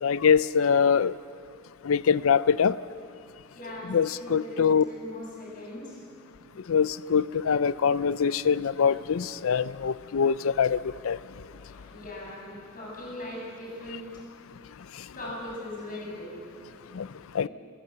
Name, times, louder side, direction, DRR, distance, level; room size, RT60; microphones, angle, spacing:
voice 1, 0.0-1.1 1.8-2.8 3.9-4.8 6.7-11.2 16.9-17.1 17.3-17.5, left 6 dB, 85° left, 17 dB, 0.5 m, -23 dB
voice 2, 3.5-6.0 11.6-14.2 15.1-16.5 17.4-17.5, left 1 dB, 40° left, -3 dB, 7.5 m, -40 dB
28.0 x 15.0 x 8.0 m, 2.4 s
head